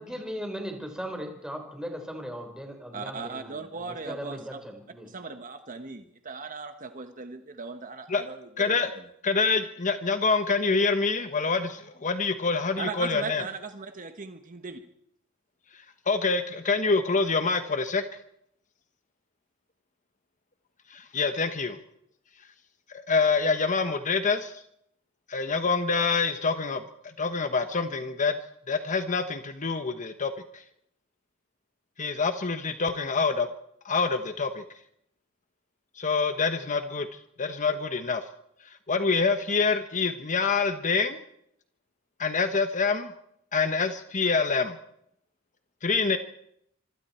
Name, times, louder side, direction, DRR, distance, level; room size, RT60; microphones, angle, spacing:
voice 1, 0.0-5.1, equal, 5° right, 3 dB, 4.5 m, -38 dB
voice 2, 2.9-4.4 5.1-9.0 12.8-14.8, right 4 dB, 40° right, 7 dB, 1.3 m, -38 dB
voice 3, 8.6-8.9 9.2-13.4 16.1-18.0 20.9-21.8 23.1-24.6 25.3-26.8 27.2-28.4 28.7-30.6 32.0-33.5 33.8-34.6 36.0-37.1 37.4-38.2 38.9-41.2 42.2-43.1 43.5-44.8 45.8-46.2, left 4 dB, 35° left, 8 dB, 1.1 m, -26 dB
26.0 x 24.5 x 4.5 m, 0.74 s
head